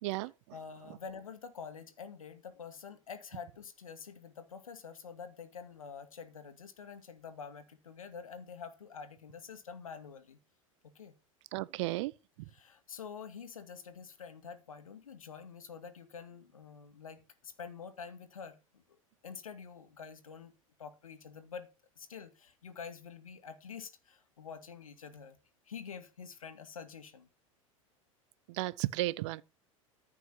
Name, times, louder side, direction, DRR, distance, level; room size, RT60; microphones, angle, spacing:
voice 1, 0.0-0.3 11.5-12.1 28.5-29.4, right 19 dB, 55° right, 0.8 m, -33 dB
voice 2, 0.5-10.4 10.8-11.1 12.5-18.8 19.2-20.5 20.8-21.7 22.0-25.4 25.7-27.3, left 6 dB, 80° left, 2.2 m, -47 dB
14.0 x 6.0 x 5.8 m
figure-of-eight pair, 85°, 18 cm